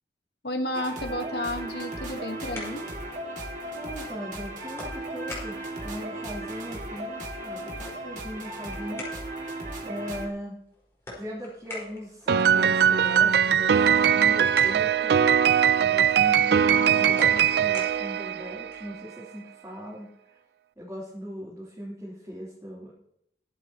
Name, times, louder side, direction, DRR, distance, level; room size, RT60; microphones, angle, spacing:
voice 1, 0.4-2.9, left 1 dB, 65° left, 6 dB, 1.4 m, -32 dB
sound 1, 0.7-10.3, right 2 dB, 45° right, 2.1 m, -36 dB
sound 2, 2.2-19.0, left 2 dB, 15° left, 4.5 m, -46 dB
voice 2, 3.7-9.1 9.8-10.5 11.1-15.1 15.8-20.3 20.8-22.9, equal, 15° right, -7 dB, 3.2 m, -39 dB
Piano, 12.3-18.8, right 8 dB, 65° right, 0.4 m, -21 dB
22.0 x 8.2 x 2.9 m, 0.74 s
head